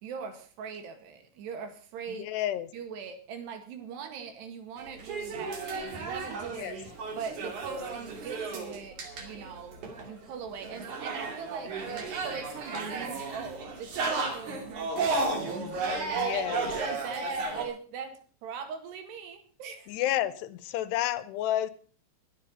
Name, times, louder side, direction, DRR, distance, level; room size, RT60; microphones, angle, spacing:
voice 1, 0.0-2.3 2.7-6.8 7.1-12.0 12.2-17.3 17.6-19.9, right 6 dB, 85° right, 7 dB, 4.0 m, -41 dB
voice 2, 2.1-2.7 6.6-6.8 12.0-12.1 16.1-16.7 19.9-21.7, left 13 dB, 90° left, 15 dB, 3.0 m, -30 dB
sound 1, 4.8-17.6, right 3 dB, 50° right, 3.6 m, -34 dB
22.0 x 7.5 x 5.5 m, 0.41 s
omnidirectional pair, 4.7 m